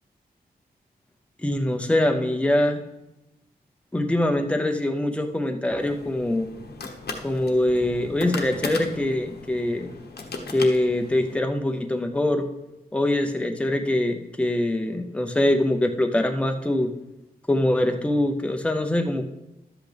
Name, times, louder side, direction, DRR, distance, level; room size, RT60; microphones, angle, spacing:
voice 1, 1.4-2.8 3.9-6.5 7.2-9.9 10.5-12.4 12.9-16.9 17.5-19.2, left 1 dB, 5° left, 5 dB, 0.6 m, -23 dB
sound 1, 5.8-11.3, left 3 dB, 80° left, 1.1 m, -37 dB
12.0 x 8.1 x 3.4 m, 0.96 s
wide cardioid pair, 165°, 17 cm